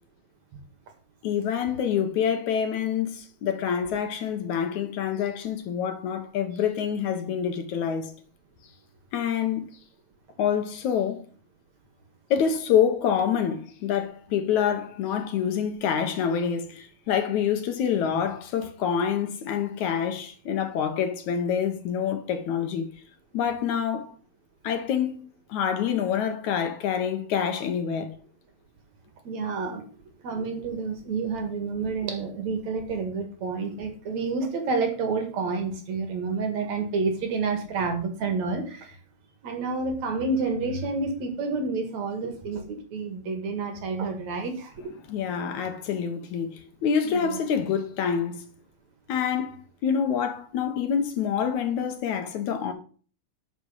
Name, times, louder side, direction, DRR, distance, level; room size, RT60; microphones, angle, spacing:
voice 1, 1.2-8.1 9.1-9.7 10.4-11.2 12.3-22.9 23.3-24.1 24.6-28.1 45.0-48.4 49.1-52.7, left 8 dB, 65° left, 2.4 m, -26 dB
voice 2, 29.2-29.8 30.2-39.0 39.4-44.7 47.0-47.4, right 4 dB, 60° right, 3.0 m, -29 dB
12.0 x 6.5 x 5.6 m
omnidirectional pair, 3.8 m